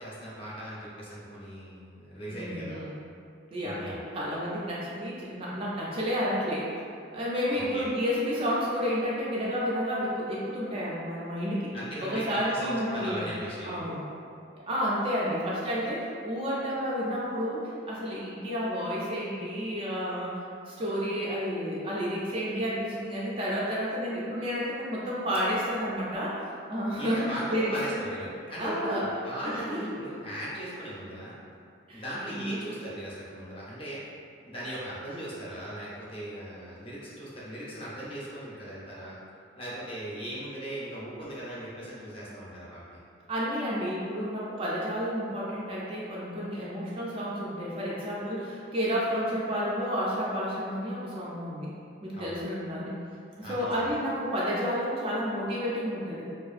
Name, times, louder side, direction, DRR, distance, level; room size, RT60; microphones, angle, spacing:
voice 1, 0.0-2.8 3.6-4.0 7.5-7.9 11.7-14.0 26.9-31.4 31.9-34.0 34.5-39.2 39.6-43.0 52.1-52.4 53.4-53.9, right 1 dB, 30° left, -7 dB, 0.5 m, -38 dB
voice 2, 2.3-2.9 3.5-6.8 7.1-11.7 12.0-13.3 13.6-14.0 14.6-28.0 28.6-29.1 29.4-29.8 31.9-32.0 32.3-32.6 43.3-51.7 52.0-53.0 53.4-56.2, equal, 30° right, -6 dB, 0.3 m, -31 dB
2.5 x 2.4 x 2.4 m, 2.4 s
head